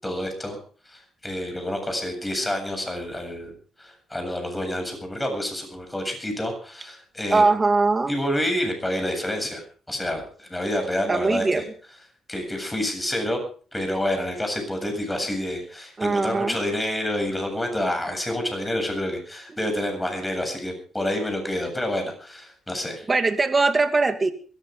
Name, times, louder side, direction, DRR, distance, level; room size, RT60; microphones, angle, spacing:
voice 1, 0.0-0.6 0.9-3.5 3.8-7.5 8.1-11.6 12.3-13.4 13.7-23.1, left 1 dB, 10° left, 5 dB, 7.8 m, -28 dB
voice 2, 7.3-8.1 11.1-11.6 16.0-16.6 23.1-24.3, right 3 dB, 25° right, 7 dB, 2.4 m, -21 dB
22.5 x 14.5 x 3.8 m, 0.42 s
cardioid pair, 90°, 0 cm